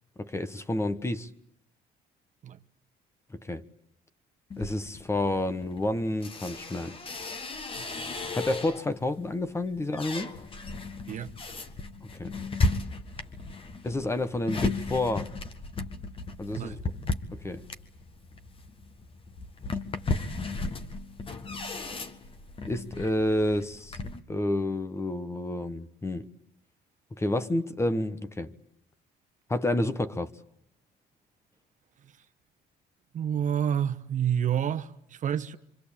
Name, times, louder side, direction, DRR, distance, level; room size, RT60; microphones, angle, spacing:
voice 1, 0.2-1.3 3.3-3.6 4.6-7.0 8.3-10.3 12.1-12.3 13.8-15.3 16.4-16.8 17.3-17.7 22.7-24.0 24.3-26.3 27.1-28.5 29.5-30.3, left 1 dB, 15° left, 1.2 m, -29 dB
sound 1, 4.5-9.0 9.5-24.2, left 3 dB, 30° left, 1.7 m, -35 dB
voice 2, 33.1-35.6, right 9 dB, 50° right, 1.1 m, -29 dB
26.0 x 25.5 x 8.7 m
cardioid pair, 110°, 17 cm